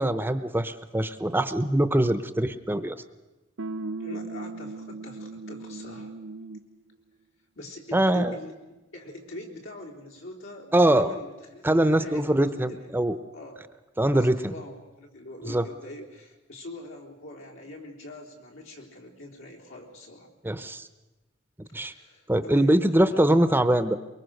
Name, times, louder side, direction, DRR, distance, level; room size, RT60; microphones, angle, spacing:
voice 1, 0.0-3.0 7.9-8.4 10.7-11.1 11.6-13.2 14.0-14.5 15.4-15.6 20.4-20.8 21.7-21.9 22.3-24.0, right 1 dB, 10° right, 12 dB, 0.7 m, -23 dB
sound 1, 3.6-6.7, right 3 dB, 80° right, 0.8 m, -37 dB
voice 2, 4.0-6.1 7.6-12.9 13.3-13.6 14.1-20.3 21.7-23.5, left 1 dB, 85° left, -1 dB, 3.9 m, -43 dB
23.5 x 23.0 x 6.6 m, 1.1 s
head